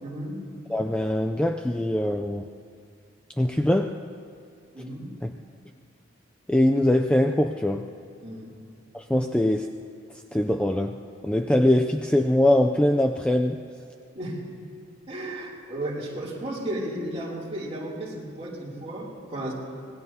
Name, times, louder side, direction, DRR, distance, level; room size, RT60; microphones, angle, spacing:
voice 1, 0.0-0.4 4.7-5.1 8.2-8.6 14.1-14.4 15.1-19.5, right 1 dB, 30° right, -5 dB, 3.0 m, -34 dB
voice 2, 0.7-2.5 3.4-4.0 5.2-5.3 6.5-7.8 8.9-9.7 10.3-11.0 11.2-13.6, left 1 dB, 5° left, 4 dB, 0.3 m, -22 dB
25.5 x 19.0 x 2.8 m, 2.3 s
head